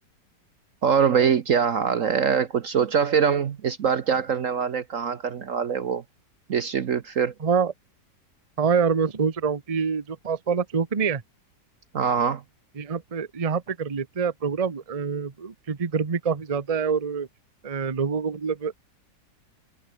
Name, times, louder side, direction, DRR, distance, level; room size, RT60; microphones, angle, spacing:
voice 1, 0.8-6.0 6.5-7.3 11.9-12.4, right 7 dB, 55° right, 1.1 m, -23 dB
voice 2, 7.4-7.7 8.6-11.2 12.8-17.3 17.6-18.7, right 6 dB, 25° right, 0.9 m, -26 dB
omnidirectional pair, 1.9 m